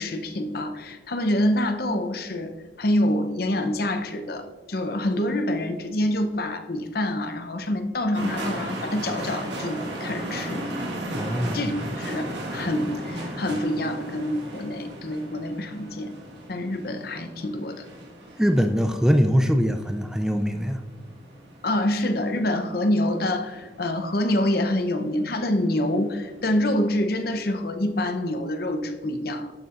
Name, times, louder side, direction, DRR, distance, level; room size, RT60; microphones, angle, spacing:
voice 1, 0.0-2.5 2.8-10.7 11.5-16.1 16.5-17.8 21.6-29.5, left 1 dB, 55° left, 7 dB, 0.7 m, -26 dB
sound 1, 8.1-26.9, right 1 dB, 70° right, 1.6 m, -36 dB
voice 2, 11.1-11.6 18.4-20.8, equal, 5° right, 7 dB, 0.3 m, -22 dB
12.0 x 6.8 x 2.5 m, 1.4 s
head